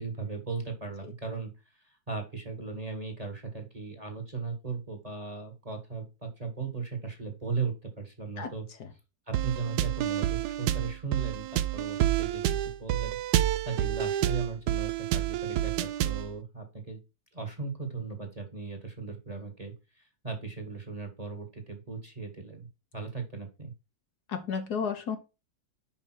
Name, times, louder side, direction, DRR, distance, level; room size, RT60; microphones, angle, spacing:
voice 1, 0.0-1.5 1.8-8.6 9.3-17.0 17.3-22.7 22.9-23.7, right 4 dB, 25° right, 4 dB, 1.4 m, -37 dB
sound 1, 9.3-16.3, right 13 dB, 75° right, 1.0 m, -29 dB
voice 2, 24.3-25.2, left 6 dB, 65° left, 7 dB, 1.5 m, -32 dB
5.7 x 5.1 x 4.3 m, 0.28 s
omnidirectional pair, 1.9 m